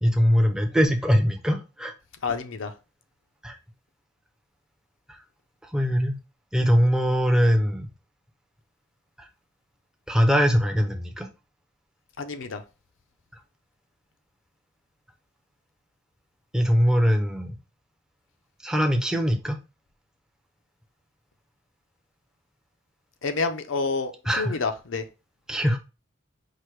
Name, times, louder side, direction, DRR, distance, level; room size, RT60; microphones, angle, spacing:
voice 1, 0.0-1.9 3.4-3.6 5.1-5.2 5.6-6.2 6.5-7.9 9.2-9.3 10.1-11.3 16.5-17.6 18.6-19.6 24.3-24.6 25.5-25.8, equal, 5° right, 3 dB, 0.5 m, -22 dB
voice 2, 2.2-2.7 12.2-12.6 23.2-25.0, left 4 dB, 75° left, 8 dB, 0.6 m, -28 dB
4.8 x 2.1 x 4.5 m, 0.29 s
head